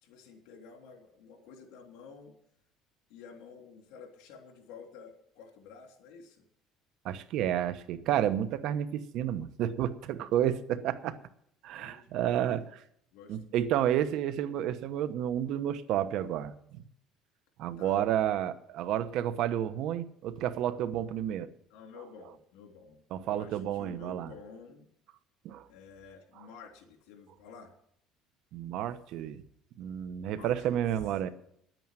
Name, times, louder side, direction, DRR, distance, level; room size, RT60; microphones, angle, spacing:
voice 1, 0.0-2.3 3.1-6.4 11.8-12.7 13.1-13.6 17.8-18.0 21.7-23.0 23.2-24.9 25.7-27.8 30.3-30.8, left 5 dB, 80° left, 3 dB, 3.1 m, -51 dB
voice 2, 7.0-11.2 11.6-12.6 13.3-16.5 17.6-21.5 23.1-24.3 25.4-25.7 28.5-29.4 29.8-31.3, right 11 dB, 65° right, 12 dB, 1.0 m, -30 dB
10.0 x 9.2 x 7.5 m, 0.71 s
cardioid pair, 125°, 0 cm